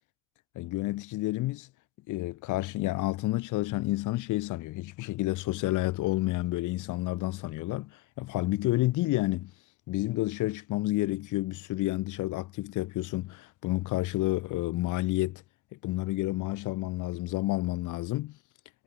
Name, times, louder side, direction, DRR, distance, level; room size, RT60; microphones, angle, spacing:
voice 1, 0.6-1.7 2.1-9.5 9.9-15.4 15.7-18.4, left 18 dB, 45° left, 2.5 m, -30 dB
supercardioid pair, 130°, 43 cm